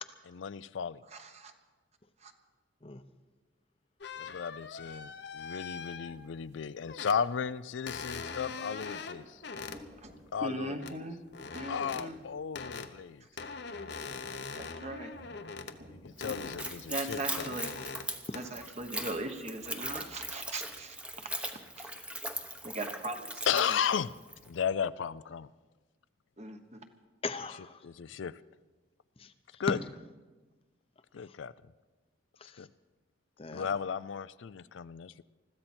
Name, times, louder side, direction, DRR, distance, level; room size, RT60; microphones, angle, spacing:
voice 1, 0.4-1.0 4.2-9.4 10.3-11.0 11.7-13.2 15.9-17.5 22.0-22.1 23.5-24.1 24.4-25.5 27.8-28.4 29.6-29.8 31.1-31.5 32.6-32.7 33.5-35.2, left 7 dB, 80° left, 16 dB, 0.4 m, -34 dB
voice 2, 1.1-1.5 2.2-2.3 10.0-10.1 10.4-11.2 11.5-12.2 14.5-15.1 16.9-17.7 18.3-21.0 21.8-21.9 22.6-23.6 26.4-26.9, right 2 dB, 35° right, 6 dB, 1.2 m, -39 dB
sound 1, 4.0-6.4 6.9-7.3 7.9-9.8 10.8-10.9 11.3-12.1 12.6-12.9 13.4-15.8 16.0-16.8 17.1-18.1 18.3-18.7, left 5 dB, 60° left, 0.8 m, -42 dB
sound 2, 6.5-7.7 8.0-10.2 10.6-11.3 11.6-12.5 12.7-12.9 13.4-16.7, equal, 80° right, 6.3 m, -53 dB
Splash splatter / Trickle dribble, 16.1-24.5, right 1 dB, 5° right, 0.9 m, -40 dB
voice 3, 18.3-18.6 27.2-27.9 29.2-29.6 31.1-31.4 32.4-32.7 33.4-33.7, left 4 dB, 30° left, 10 dB, 0.7 m, -42 dB
21.0 x 14.5 x 4.4 m, 1.2 s
head